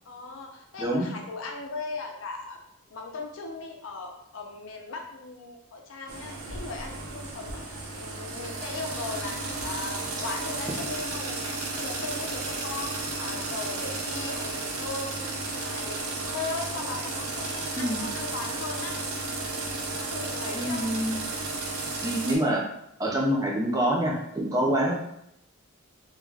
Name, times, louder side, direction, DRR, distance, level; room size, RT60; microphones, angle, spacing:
voice 1, 0.1-2.6 2.9-19.0 19.3-19.5 19.9-20.9, left 3 dB, 65° left, 2 dB, 0.5 m, -38 dB
voice 2, 0.8-1.1 17.8-18.0 20.5-21.2 22.0-22.6 23.0-25.0, right 1 dB, 15° right, -2 dB, 0.4 m, -26 dB
sound 1, 6.1-22.4, right 3 dB, 80° right, 0.5 m, -33 dB
2.3 x 2.2 x 3.2 m, 0.79 s
head